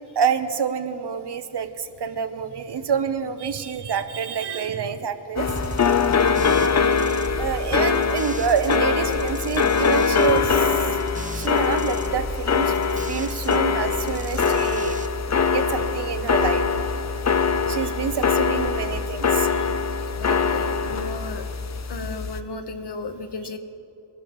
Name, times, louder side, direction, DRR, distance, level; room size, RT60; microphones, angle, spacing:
voice 1, 0.1-5.5 5.8-6.0 7.3-10.8 11.3-12.7 13.1-15.0 15.5-16.7 17.7-19.5, right 7 dB, 65° right, 10 dB, 0.9 m, -27 dB
sound 1, 5.4-22.4, left 5 dB, 40° left, 0.7 m, -23 dB
sound 2, 5.5-8.8 9.1-13.6 13.9-15.1, right 3 dB, 20° right, 0.7 m, -38 dB
voice 2, 13.0-13.3 19.5-19.7 20.2-21.5 21.9-23.6, left 3 dB, 65° left, 7 dB, 1.2 m, -34 dB
22.5 x 12.0 x 3.1 m, 2.9 s
cardioid pair, 65°, 44 cm